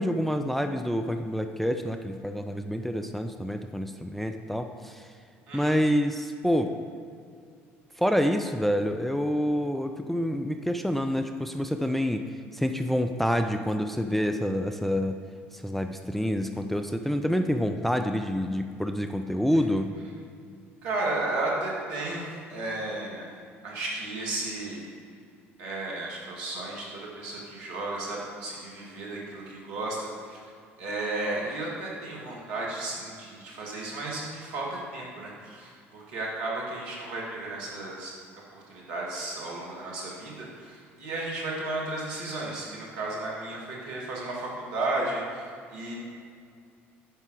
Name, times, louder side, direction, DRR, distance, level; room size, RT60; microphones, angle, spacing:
voice 1, 0.0-5.1 5.5-6.7 8.0-12.2 12.5-15.2 15.5-19.9, equal, 5° left, 6 dB, 0.5 m, -27 dB
voice 2, 5.5-5.8 20.8-23.2 23.6-24.8 25.6-30.5 30.8-38.1 38.5-45.9, right 2 dB, 70° right, -3 dB, 2.0 m, -34 dB
8.9 x 5.6 x 4.7 m, 2.3 s
hypercardioid pair, 60°, 7 cm